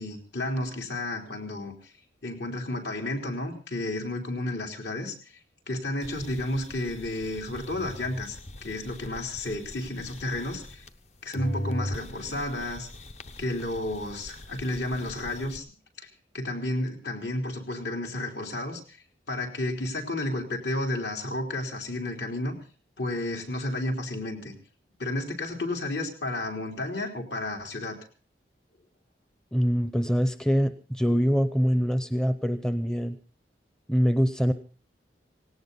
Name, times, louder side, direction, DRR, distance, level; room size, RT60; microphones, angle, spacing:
voice 1, 0.0-1.7 2.2-5.1 5.7-10.8 11.2-12.9 13.4-15.6 16.0-16.1 16.3-19.0 19.3-22.6 23.0-24.5 25.0-28.0, left 1 dB, 70° left, 2 dB, 3.7 m, -32 dB
sound 1, 6.0-11.1 11.3-15.6, left 1 dB, 35° left, 0.9 m, -40 dB
voice 2, 29.5-33.2 33.9-34.5, equal, 5° left, 10 dB, 0.7 m, -24 dB
18.0 x 18.0 x 4.0 m, 0.37 s
head